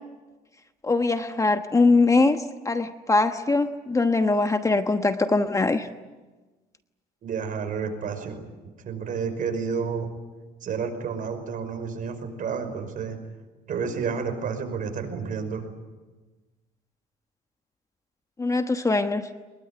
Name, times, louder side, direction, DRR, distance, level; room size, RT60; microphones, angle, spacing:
voice 1, 0.8-5.9 18.4-19.3, left 3 dB, 20° left, 8 dB, 1.2 m, -22 dB
voice 2, 7.2-8.5 8.8-10.1 10.6-13.2 13.7-15.7, right 6 dB, 55° right, 6 dB, 5.5 m, -30 dB
23.0 x 21.5 x 9.6 m, 1.2 s
cardioid pair, 110°, 17 cm